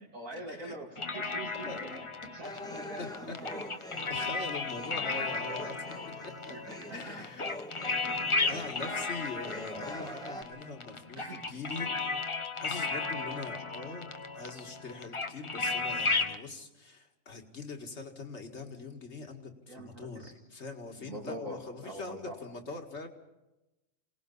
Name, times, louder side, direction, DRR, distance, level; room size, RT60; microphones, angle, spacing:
voice 1, 0.1-1.9 2.3-3.6 5.0-5.3 6.5-7.5 8.0-9.0 9.7-10.1 11.2-11.5 19.7-20.3 21.0-22.4, right 1 dB, 85° right, -2 dB, 2.9 m, -45 dB
sound 1, 1.0-16.4, left 3 dB, 25° left, 0.8 m, -35 dB
voice 2, 1.6-2.0 3.0-3.4 4.1-5.8 6.2-6.3 6.7-7.5 8.5-12.2 12.6-23.1, left 3 dB, 55° left, 4 dB, 2.3 m, -43 dB
sound 2, 2.4-10.4, left 1 dB, 5° left, 1.1 m, -45 dB
27.0 x 18.5 x 5.5 m, 1.0 s
omnidirectional pair, 1.4 m